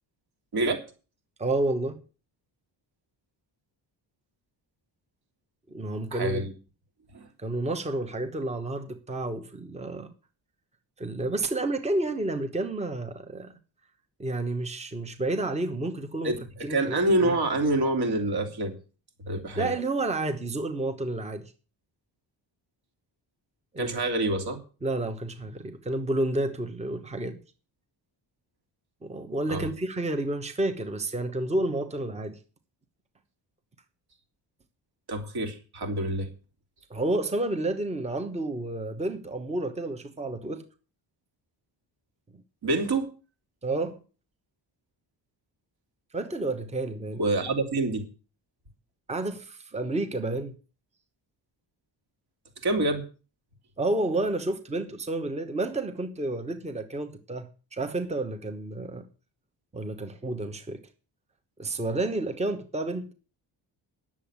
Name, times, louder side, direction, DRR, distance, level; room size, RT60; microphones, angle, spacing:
voice 1, 0.5-0.8 6.1-6.5 7.1-7.3 16.2-18.8 19.2-19.7 23.8-24.6 29.5-29.7 35.1-36.3 42.6-43.1 47.2-48.0 52.6-53.0, right 2 dB, 60° right, 3.1 m, -26 dB
voice 2, 1.4-2.0 5.7-6.4 7.4-10.1 11.0-13.6 14.2-17.4 19.6-21.4 23.7-24.0 24.8-27.4 29.0-32.4 36.9-40.6 42.3-42.4 43.6-44.0 46.1-47.2 49.1-50.6 53.8-59.1 59.7-60.8 61.6-63.1, right 2 dB, 15° right, 1.1 m, -30 dB
10.0 x 7.3 x 8.7 m
wide cardioid pair, 155°, 44 cm